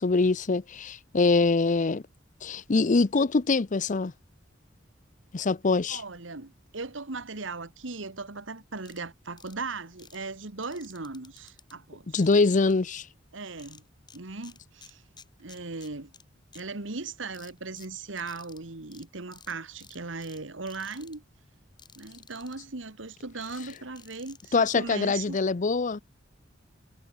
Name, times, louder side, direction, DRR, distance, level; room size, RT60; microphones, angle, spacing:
voice 1, 0.0-2.0 2.4-4.1 5.3-6.0 12.1-13.1 24.5-26.0, left 3 dB, 40° left, 0.6 m, -24 dB
voice 2, 5.9-12.2 13.3-13.8 14.1-15.0 15.4-16.1 16.5-21.2 22.0-25.4, right 3 dB, 90° right, 1.8 m, -38 dB
sound 1, 8.9-9.0 9.4-9.6 10.0-10.2 10.6-11.7 12.2-13.0 13.6-14.2 14.4-16.2 16.5-16.6 17.3-18.6 18.9-19.1 19.3-19.5 19.8-20.4 20.7-21.2 21.8-22.6 23.4-24.6, left 6 dB, 25° left, 4.7 m, -53 dB
head